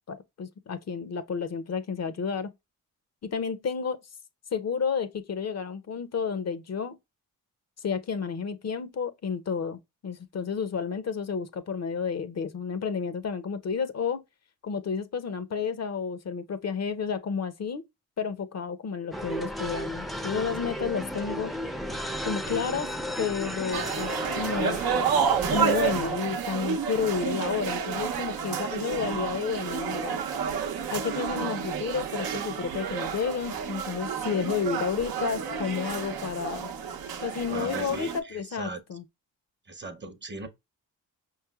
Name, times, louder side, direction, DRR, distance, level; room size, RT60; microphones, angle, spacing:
voice 1, 0.0-2.5 3.2-4.0 4.5-7.0 7.8-14.2 14.6-17.8 18.2-21.5 22.2-22.9 23.2-24.8 25.5-30.2 30.9-36.7 37.2-39.0, left 6 dB, 45° left, 0.5 m, -31 dB
sound 1, 19.1-26.1, equal, ahead, 0.4 m, -34 dB
sound 2, 23.7-38.2, right 6 dB, 85° right, 0.7 m, -30 dB
voice 2, 37.5-38.8 39.7-40.5, right 2 dB, 30° right, 0.7 m, -39 dB
5.2 x 3.1 x 2.2 m
cardioid pair, 80°, 35 cm